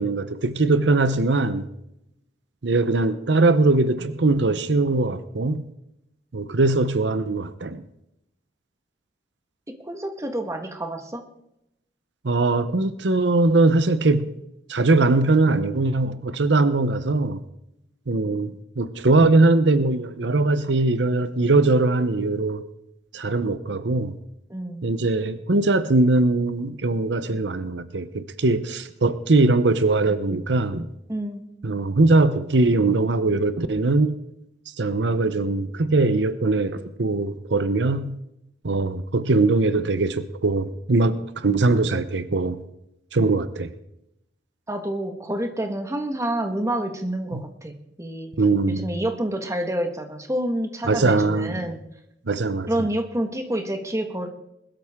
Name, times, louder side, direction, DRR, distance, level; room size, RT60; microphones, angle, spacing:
voice 1, 0.0-1.7 2.6-5.6 6.3-7.8 12.2-14.3 14.7-17.4 18.1-22.6 23.1-24.1 24.8-30.9 31.6-34.2 34.8-38.2 38.6-42.6 43.1-43.7 47.3-47.4 48.4-48.9 50.8-51.6 52.3-52.7, right 2 dB, 80° right, 12 dB, 0.8 m, -21 dB
voice 2, 9.9-11.2 24.5-24.8 31.1-31.4 44.7-48.3 48.7-51.8 52.7-54.3, right 1 dB, 15° right, 5 dB, 1.5 m, -28 dB
21.0 x 13.0 x 3.7 m, 0.83 s
head